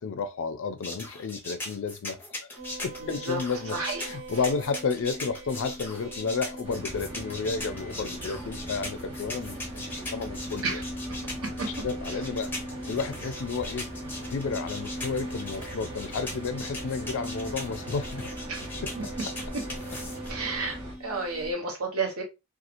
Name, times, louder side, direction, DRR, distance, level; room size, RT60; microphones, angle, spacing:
voice 1, 0.0-2.5 2.8-10.8 11.7-12.5 12.9-13.9 14.3-18.3 18.8-18.9, left 5 dB, 60° left, 0.4 m, -32 dB
sound 1, 0.8-20.3, left 2 dB, 10° left, 0.7 m, -39 dB
sound 2, 2.6-21.5, equal, 45° right, 1.3 m, -40 dB
voice 2, 3.1-3.4 3.7-4.0 10.6-10.8 11.6-11.7 12.1-12.2 18.5-18.7 19.0-19.1 20.3-22.2, right 3 dB, 70° right, 1.0 m, -31 dB
sound 3, 6.6-20.9, right 1 dB, 25° right, 0.9 m, -42 dB
2.8 x 2.3 x 2.5 m
head